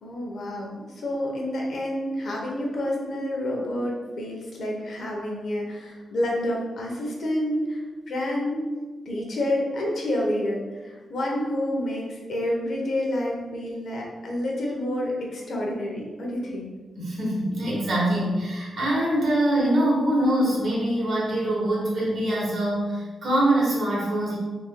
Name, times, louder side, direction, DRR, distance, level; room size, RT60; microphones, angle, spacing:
voice 1, 0.0-8.6 9.1-16.7, left 1 dB, 60° left, -2 dB, 0.8 m, -29 dB
voice 2, 16.9-24.4, right 1 dB, 55° right, -5 dB, 1.3 m, -24 dB
3.7 x 3.1 x 2.2 m, 1.3 s
wide cardioid pair, 130°, 0 cm